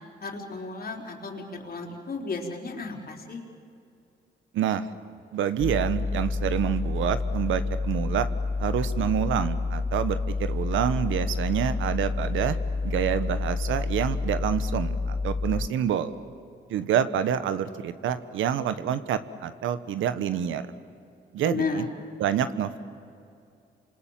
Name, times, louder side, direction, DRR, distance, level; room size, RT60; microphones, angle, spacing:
voice 1, 0.2-3.4 21.4-21.8, left 4 dB, 50° left, 1 dB, 4.7 m, -33 dB
voice 2, 4.5-4.9 5.3-8.3 8.6-12.6 12.8-16.1 16.7-20.6 21.3-21.8 22.2-22.8, right 9 dB, 85° right, 11 dB, 1.2 m, -27 dB
sound 1, 5.6-15.7, left 3 dB, 20° left, 0.7 m, -29 dB
29.0 x 26.0 x 7.6 m, 2.5 s
cardioid pair, 70°, 20 cm